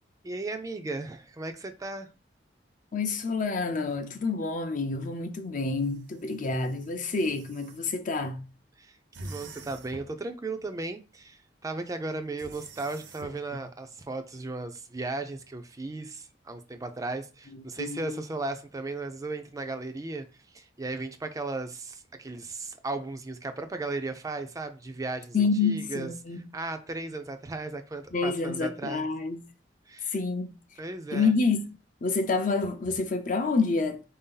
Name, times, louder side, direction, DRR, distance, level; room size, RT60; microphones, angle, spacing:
voice 1, 0.2-2.1 8.8-8.9 9.2-20.3 20.5-25.4 25.6-26.1 26.5-29.0 29.9-30.1 30.8-31.3, right 3 dB, 20° right, 0.4 m, -36 dB
voice 2, 2.9-8.4 17.8-18.2 25.3-26.5 28.1-29.4 30.1-30.6 31.1-31.7 32.0-34.0, left 4 dB, 45° left, 0.6 m, -28 dB
sound 1, 5.7-7.8 9.1-10.2 12.4-13.5, right 2 dB, 80° right, 0.7 m, -46 dB
4.1 x 2.7 x 3.7 m
head